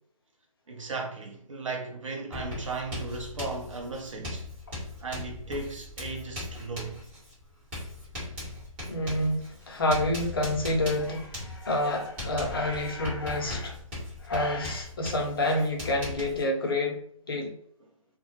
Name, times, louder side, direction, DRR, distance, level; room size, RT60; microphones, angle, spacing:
voice 1, 0.7-4.5 5.0-7.0, right 3 dB, 60° right, 0.7 m, -36 dB
Writing, 2.3-16.4, left 2 dB, 15° right, 1.0 m, -39 dB
voice 2, 8.9-13.8 14.2-17.0 17.3-17.5, left 1 dB, 40° left, 0.5 m, -28 dB
2.1 x 2.1 x 2.8 m
figure-of-eight pair, 155°, 18 cm